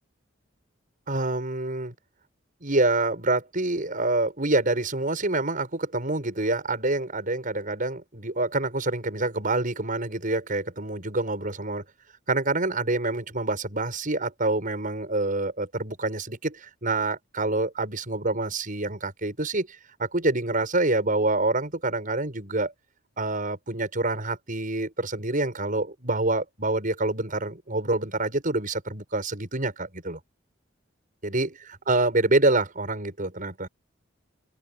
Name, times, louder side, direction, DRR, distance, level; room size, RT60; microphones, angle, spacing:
voice 1, 1.1-1.9 2.6-11.8 12.3-19.7 20.0-22.7 23.2-30.2 31.2-33.7, right 2 dB, 45° right, 7.2 m, -26 dB
open air
head